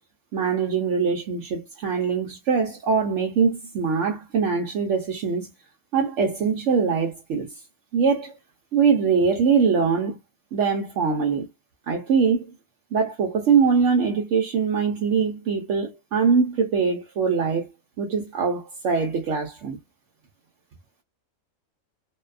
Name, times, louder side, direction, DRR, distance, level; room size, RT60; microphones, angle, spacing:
voice 1, 0.3-5.5 5.9-7.6 7.9-8.4 8.7-10.2 10.5-11.5 11.9-12.5 12.9-17.7 18.0-19.8, right 5 dB, 70° right, 0.9 m, -22 dB
2.6 x 2.2 x 2.3 m
omnidirectional pair, 1.4 m